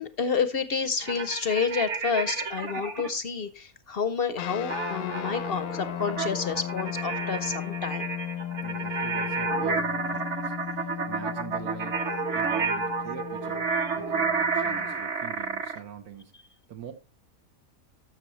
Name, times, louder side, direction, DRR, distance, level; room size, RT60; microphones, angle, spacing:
voice 1, 0.0-8.1, left 5 dB, 55° left, 0.7 m, -29 dB
sound 1, 1.0-3.1 4.7-15.8, right 4 dB, 55° right, 1.4 m, -30 dB
sound 2, 4.4-15.0, left 11 dB, 80° left, 1.2 m, -36 dB
voice 2, 8.6-13.7 14.0-16.3 16.7-16.9, right 9 dB, 80° right, 1.5 m, -44 dB
12.5 x 6.5 x 3.0 m
omnidirectional pair, 1.5 m